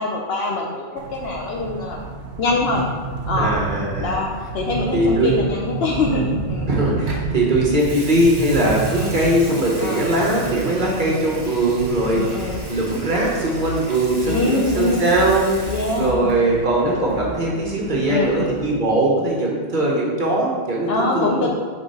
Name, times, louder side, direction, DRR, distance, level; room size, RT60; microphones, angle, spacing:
voice 1, 0.0-2.0 2.4-2.8 3.3-3.6 4.0-6.7 8.9-9.1 9.8-10.0 10.8-11.1 12.1-12.6 14.2-15.1 15.7-16.4 18.1-18.5 20.9-21.5, left 3 dB, 70° left, -1 dB, 0.9 m, -24 dB
sound 1, 1.0-18.8, right 4 dB, 75° right, 0.8 m, -31 dB
voice 2, 3.3-4.1 4.9-5.3 6.7-12.2 12.7-15.5 16.0-21.5, right 1 dB, 50° right, -4 dB, 1.1 m, -20 dB
Water tap faucet / Sink (filling or washing) / Liquid, 7.1-7.3 7.7-16.5 16.8-17.1, right 1 dB, 25° right, 0.9 m, -38 dB
sound 2, 12.4-17.3, left 2 dB, ahead, 1.5 m, -36 dB
4.3 x 4.3 x 5.3 m, 1.5 s
omnidirectional pair, 1.1 m